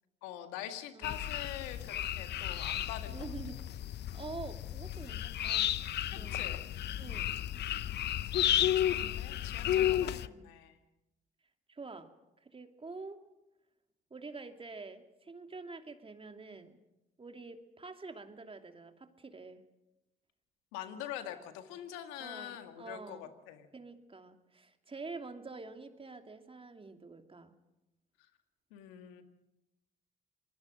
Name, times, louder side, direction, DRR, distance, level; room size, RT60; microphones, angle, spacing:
voice 1, 0.2-3.3 6.1-6.6 8.8-10.8 20.7-23.7 28.7-29.2, left 11 dB, 85° left, 7 dB, 2.0 m, -44 dB
sound 1, 1.0-10.3, left 11 dB, 65° left, 0.8 m, -33 dB
voice 2, 3.1-3.6 4.1-5.8 6.2-6.7 7.0-7.3 8.4-8.7 9.8-10.5 11.7-12.1 12.4-13.2 14.1-16.8 17.2-19.7 22.2-23.3 23.7-27.5, right 3 dB, 30° right, 6 dB, 2.8 m, -47 dB
26.5 x 20.5 x 6.4 m, 0.94 s
supercardioid pair, 55°, 19 cm